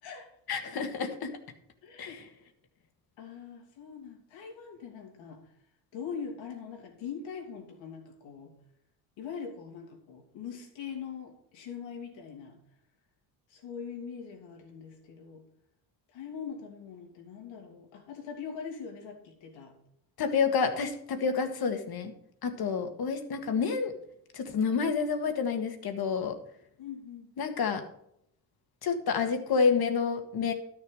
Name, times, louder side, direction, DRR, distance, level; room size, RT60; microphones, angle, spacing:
voice 1, 0.5-1.3 2.0-2.2 20.2-22.1 22.4-23.9 24.3-26.4 27.4-27.8 28.8-30.5, left 5 dB, 55° left, 7 dB, 1.8 m, -29 dB
voice 2, 1.8-2.2 3.2-5.4 5.9-8.5 9.2-12.6 13.5-15.4 16.1-19.7 26.8-27.3, left 6 dB, 90° left, 2 dB, 2.9 m, -42 dB
12.5 x 6.8 x 4.9 m, 0.74 s
cardioid pair, 100°, 44 cm